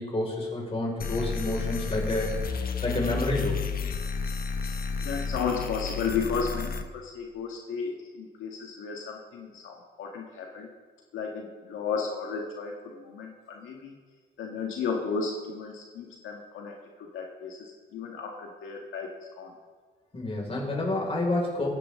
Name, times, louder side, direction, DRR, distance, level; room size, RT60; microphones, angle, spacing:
voice 1, 0.0-2.3 2.6-3.5 20.1-21.7, left 2 dB, 30° left, -2 dB, 5.3 m, -29 dB
sound 1, 1.0-6.8, left 5 dB, 45° left, 1.2 m, -31 dB
voice 2, 5.0-10.7 11.1-14.0 14.4-19.5, left 5 dB, 85° left, 0 dB, 1.8 m, -34 dB
24.0 x 10.5 x 3.7 m, 1.5 s
cardioid pair, 90°, 20 cm